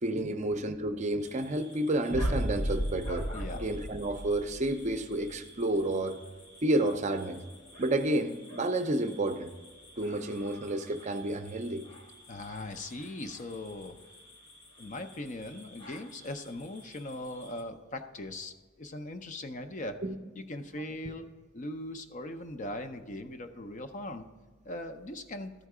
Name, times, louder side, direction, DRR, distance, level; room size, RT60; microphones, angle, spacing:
voice 1, 0.0-3.3 3.5-6.2 6.6-7.4 7.8-9.5 10.0-11.8 20.0-20.1 21.0-21.1, right 1 dB, 35° right, 7 dB, 0.5 m, -30 dB
sound 1, 1.2-17.6, left 1 dB, 55° left, 1.4 m, -51 dB
Boom, 2.1-5.1, equal, 80° left, 0.9 m, -33 dB
voice 2, 12.3-14.0 14.8-20.0 20.3-21.2 21.5-24.2 24.6-25.5, left 1 dB, 40° left, 7 dB, 0.6 m, -40 dB
13.0 x 4.6 x 4.8 m, 1.4 s
head